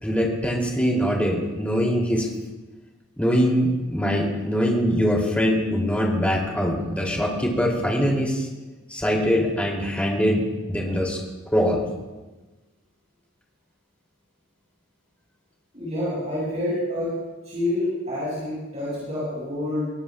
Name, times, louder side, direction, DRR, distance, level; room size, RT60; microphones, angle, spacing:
voice 1, 0.0-2.3 3.2-8.5 8.9-11.2 11.5-11.8, equal, 5° left, -2 dB, 2.8 m, -23 dB
voice 2, 15.7-17.1 17.4-19.9, left 1 dB, 35° right, -8 dB, 5.8 m, -27 dB
22.0 x 18.0 x 2.4 m, 1.2 s
head